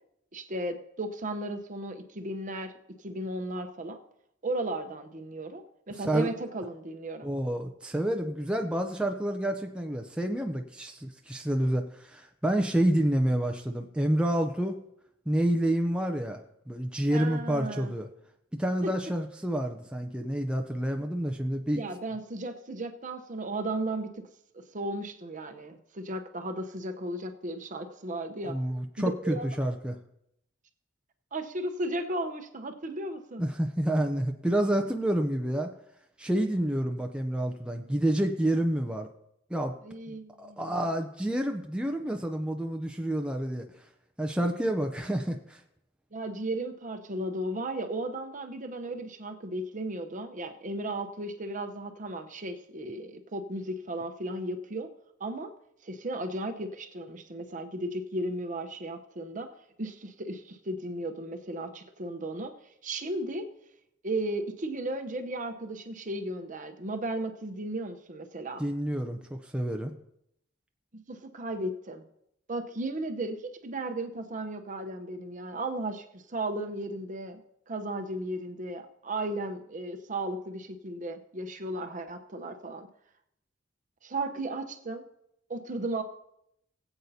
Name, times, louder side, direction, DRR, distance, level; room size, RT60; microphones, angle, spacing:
voice 1, 0.3-2.7 3.0-4.0 4.4-7.3 17.1-17.9 18.8-18.9 21.7-24.2 24.5-28.6 29.0-29.5 31.3-33.4 39.8-40.9 46.1-54.9 55.2-55.5 55.8-59.5 59.8-62.5 62.8-63.5 64.0-68.6 70.9-72.0 72.5-77.4 77.7-82.9 84.0-85.1 85.5-86.0, right 1 dB, 40° right, 6 dB, 0.8 m, -35 dB
voice 2, 6.0-6.3 7.2-14.8 15.3-16.4 16.7-18.1 18.5-21.8 28.4-30.0 33.4-35.7 36.2-39.1 39.5-39.7 40.1-43.7 44.2-45.6 68.6-69.9, right 1 dB, 5° right, 4 dB, 0.5 m, -29 dB
20.5 x 8.0 x 2.8 m, 0.78 s
head